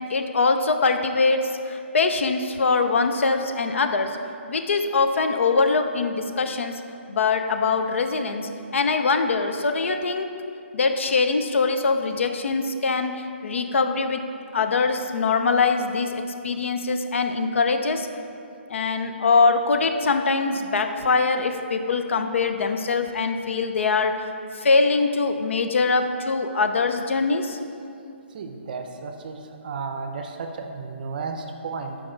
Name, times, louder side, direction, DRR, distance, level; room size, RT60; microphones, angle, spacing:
voice 1, 0.1-4.2 4.5-6.8 7.1-10.3 10.7-14.2 14.5-18.1 18.7-24.2 24.5-27.6, left 4 dB, 80° left, 7 dB, 0.5 m, -23 dB
voice 2, 28.3-32.0, right 4 dB, 45° right, 5 dB, 0.5 m, -33 dB
5.9 x 4.7 x 3.8 m, 2.5 s
hypercardioid pair, 165°, 7 cm